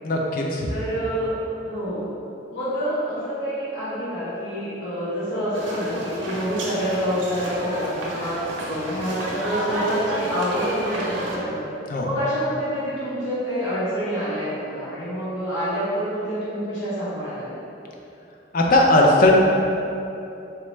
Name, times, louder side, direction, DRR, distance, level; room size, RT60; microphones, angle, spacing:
voice 1, 0.0-0.7 11.9-12.1 18.5-19.3, left 2 dB, 50° left, -1 dB, 0.4 m, -18 dB
voice 2, 0.7-1.3 1.6-2.1 2.5-9.2 9.4-11.7 12.0-17.5, equal, 75° left, -12 dB, 1.0 m, -27 dB
sound 1, 5.5-11.4, right 1 dB, 85° right, 0.6 m, -30 dB
4.0 x 2.3 x 3.0 m, 2.8 s
head